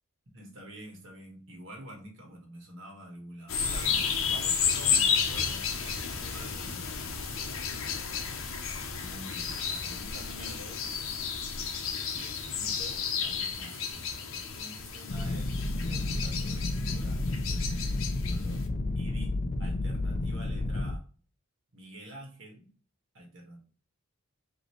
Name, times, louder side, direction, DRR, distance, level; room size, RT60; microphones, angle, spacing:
voice 1, 0.3-7.1 9.0-11.3 12.1-14.0 14.3-15.5 15.8-18.7 18.9-19.3 19.6-21.1 21.7-22.7 23.1-23.6, right 1 dB, 60° right, 1 dB, 1.5 m, -48 dB
sound 1, 3.5-18.6, left 6 dB, 70° left, 0.7 m, -32 dB
sound 2, 15.1-21.0, left 2 dB, 40° left, 0.4 m, -31 dB
5.0 x 2.8 x 3.0 m, 0.40 s
head